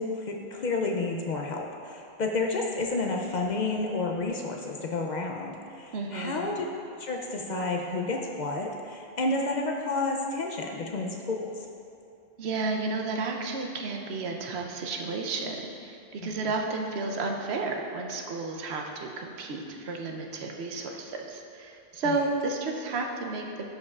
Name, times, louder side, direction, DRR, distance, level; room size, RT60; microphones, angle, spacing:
voice 1, 0.0-6.7 7.0-11.5 16.2-16.3, left 3 dB, 55° left, 1 dB, 0.5 m, -30 dB
voice 2, 5.9-6.5 12.4-23.4, right 3 dB, 80° right, 2 dB, 0.9 m, -32 dB
11.5 x 5.3 x 2.4 m, 2.6 s
omnidirectional pair, 1.1 m